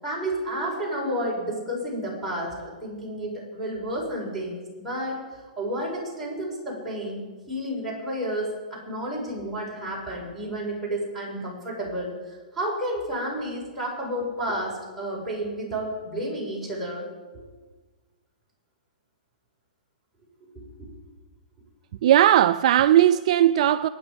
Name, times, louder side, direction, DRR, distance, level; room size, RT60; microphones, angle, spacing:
voice 1, 0.0-17.1 17.3-17.4 20.5-20.9, right 1 dB, ahead, -5 dB, 6.1 m, -31 dB
voice 2, 22.0-23.9, right 12 dB, 50° right, 12 dB, 0.4 m, -18 dB
23.0 x 9.9 x 5.2 m, 1.3 s
hypercardioid pair, 150°, 4 cm